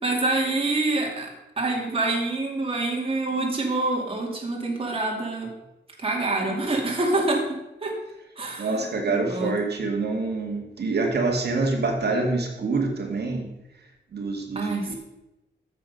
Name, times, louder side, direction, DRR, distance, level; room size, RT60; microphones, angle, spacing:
voice 1, 0.0-1.3 1.6-5.5 6.0-7.4 7.8-7.9 8.4-9.6 14.5-15.0, right 2 dB, 30° right, -1 dB, 2.4 m, -26 dB
voice 2, 8.6-13.5 14.1-15.0, right 3 dB, 60° right, 2 dB, 2.1 m, -26 dB
13.5 x 7.5 x 5.4 m, 0.95 s
wide cardioid pair, 170°, 19 cm